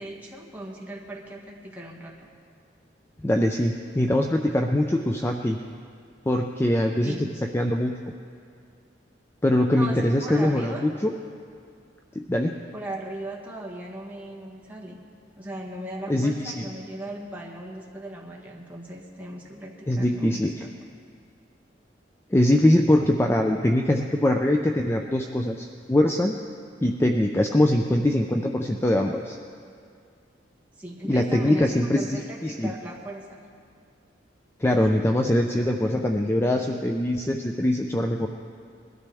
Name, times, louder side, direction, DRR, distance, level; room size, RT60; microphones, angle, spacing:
voice 1, 0.0-2.2 7.0-7.3 9.7-10.9 12.7-15.0 15.3-20.8 30.8-33.4, right 1 dB, 10° right, -3 dB, 1.7 m, -38 dB
voice 2, 3.2-5.6 6.3-7.3 7.5-7.9 9.4-11.1 12.2-12.5 16.1-16.6 19.9-20.6 22.3-26.3 26.8-29.4 31.0-32.7 34.6-38.3, left 1 dB, 15° left, 3 dB, 0.5 m, -22 dB
21.0 x 13.0 x 3.5 m, 2.3 s
head